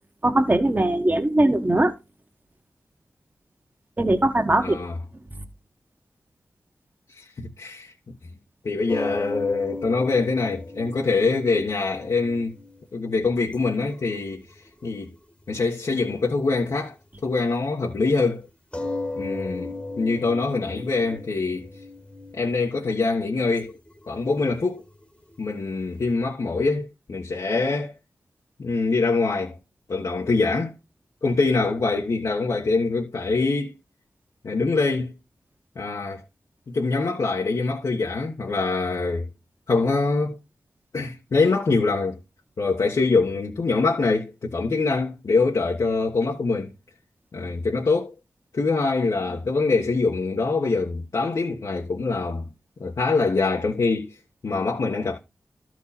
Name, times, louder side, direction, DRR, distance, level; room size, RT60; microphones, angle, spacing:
voice 1, 0.2-1.9 4.0-4.8 5.4-5.5, right 1 dB, 25° right, 1.6 m, -20 dB
voice 2, 4.6-4.9 7.1-8.1 8.6-12.5 12.9-14.4 14.8-15.1 15.5-16.9 17.2-18.5 19.2-21.7 22.3-23.7 24.1-24.8 25.4-27.9 28.6-29.6 29.9-30.7 31.2-33.7 34.4-35.2 35.7-36.2 36.7-39.3 39.7-40.4 40.9-42.2 42.6-46.7 47.3-48.1 48.5-52.5 52.8-54.2 54.4-55.2, left 3 dB, 65° left, 1.3 m, -24 dB
sound 1, 8.9-15.1 16.2-16.3 18.7-25.9, left 2 dB, 20° left, 1.4 m, -36 dB
13.0 x 4.7 x 4.2 m
wide cardioid pair, 75°, 7 cm